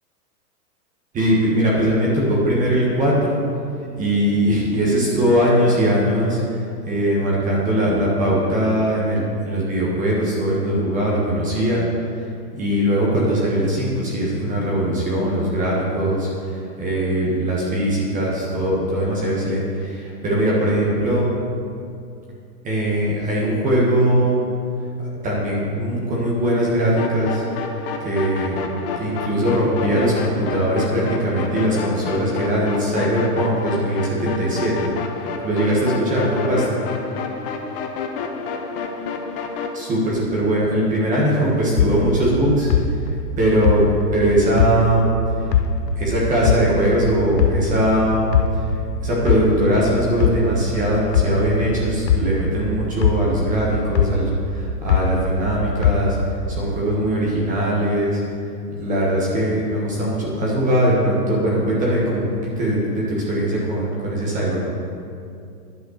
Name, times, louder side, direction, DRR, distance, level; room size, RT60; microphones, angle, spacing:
voice 1, 1.1-3.4 4.0-11.8 12.5-21.2 22.6-24.4 25.2-27.5 28.0-28.6 29.0-34.9 35.4-36.8 39.7-42.7 43.4-43.8 44.1-45.1 45.4-45.5 46.0-48.3 49.0-56.2 56.5-58.2 58.8-64.7, right 1 dB, 15° right, -4 dB, 1.4 m, -20 dB
sound 1, 27.0-39.8, left 4 dB, 35° left, 0.8 m, -29 dB
sound 2, 41.8-45.2 45.5-48.0 48.3-52.7 53.0-55.5 55.8-56.5, left 6 dB, 85° left, 1.0 m, -21 dB
10.5 x 5.7 x 6.5 m, 2.5 s
hypercardioid pair, 150°, 48 cm